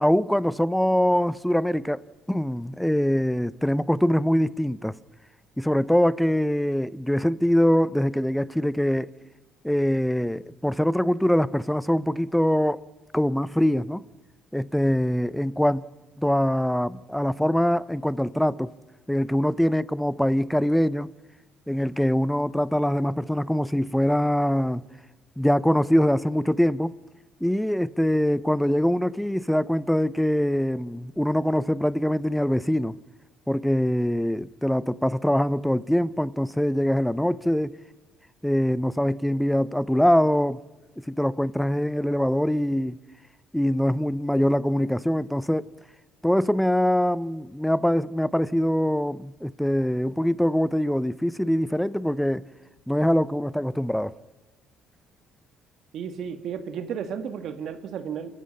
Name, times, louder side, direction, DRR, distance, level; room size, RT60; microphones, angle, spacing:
voice 1, 0.0-2.0 2.3-4.9 5.6-9.1 9.6-12.8 13.1-14.0 14.5-15.8 16.2-18.7 19.1-21.1 21.7-24.8 25.4-26.9 27.4-33.0 33.5-37.7 38.4-40.6 41.0-43.0 43.5-45.7 46.2-52.4 52.9-54.1, equal, 5° left, 0.6 m, -23 dB
voice 2, 55.9-58.3, right 7 dB, 65° right, 1.7 m, -33 dB
27.5 x 14.5 x 8.6 m
cardioid pair, 115°, 0 cm